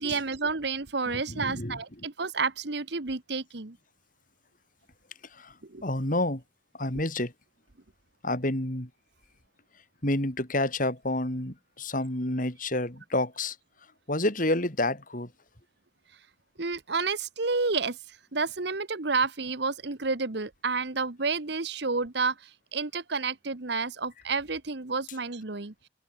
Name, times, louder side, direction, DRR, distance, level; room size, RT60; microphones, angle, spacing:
voice 1, 0.0-3.8 5.6-5.8 16.6-18.0 18.3-25.7, right 4 dB, 60° right, 1.3 m, -30 dB
voice 2, 1.1-2.1 5.3-6.4 6.7-7.3 8.2-8.9 10.0-13.6 14.1-15.3, left 1 dB, 45° left, 4.2 m, -29 dB
head